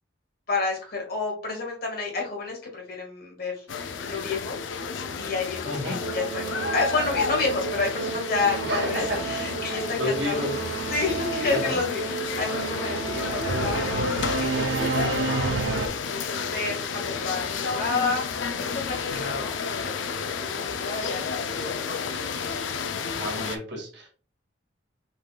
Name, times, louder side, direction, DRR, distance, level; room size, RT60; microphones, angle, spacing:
voice 1, 0.5-4.6 5.2-10.5 10.9-14.6 15.0-15.6 16.4-20.0 20.5-21.9, left 4 dB, 55° left, 0 dB, 1.7 m, -30 dB
sound 1, 3.7-23.6, left 5 dB, 90° left, 0.5 m, -31 dB
voice 2, 5.6-6.0 8.7-9.2 10.0-10.5 11.5-11.8 23.2-24.2, equal, 65° right, -1 dB, 1.9 m, -30 dB
Singing / Musical instrument, 6.0-15.9, right 4 dB, 90° right, 0.5 m, -31 dB
5.4 x 3.8 x 2.3 m, 0.39 s
head